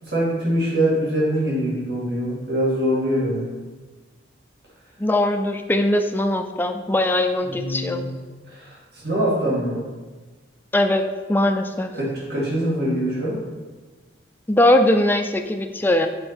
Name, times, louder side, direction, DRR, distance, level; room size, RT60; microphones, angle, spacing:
voice 1, 0.0-3.5 7.4-8.1 8.5-9.8 11.9-13.4, equal, 55° right, -5 dB, 2.1 m, -23 dB
voice 2, 5.0-8.0 10.7-11.0 11.3-11.9 14.5-16.1, left 1 dB, 10° left, 6 dB, 0.3 m, -20 dB
6.7 x 4.4 x 4.3 m, 1.3 s
head